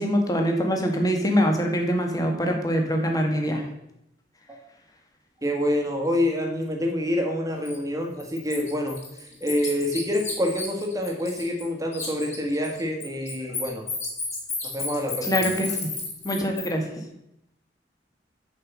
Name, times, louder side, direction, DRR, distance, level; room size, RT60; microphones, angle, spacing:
voice 1, 0.0-3.6 15.2-15.9 16.2-16.8, equal, 20° left, 2 dB, 1.5 m, -24 dB
voice 2, 5.4-13.8 14.7-15.5, left 1 dB, 20° right, 1 dB, 1.7 m, -27 dB
Bird, 7.6-7.8 8.2-11.7 11.9-16.7, left 4 dB, 35° left, 3.5 m, -33 dB
6.7 x 5.9 x 7.3 m, 0.82 s
head